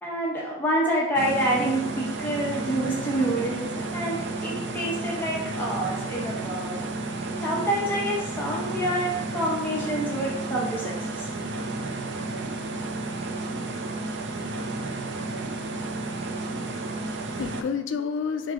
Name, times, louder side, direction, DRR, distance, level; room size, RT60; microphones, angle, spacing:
voice 1, 0.0-6.8 7.4-11.3, right 1 dB, 10° left, -5 dB, 0.8 m, -27 dB
sound 1, 1.1-17.6, right 2 dB, 65° right, 0.4 m, -32 dB
voice 2, 16.6-18.5, left 6 dB, 85° left, 8 dB, 0.4 m, -31 dB
3.7 x 3.1 x 3.6 m, 0.84 s
head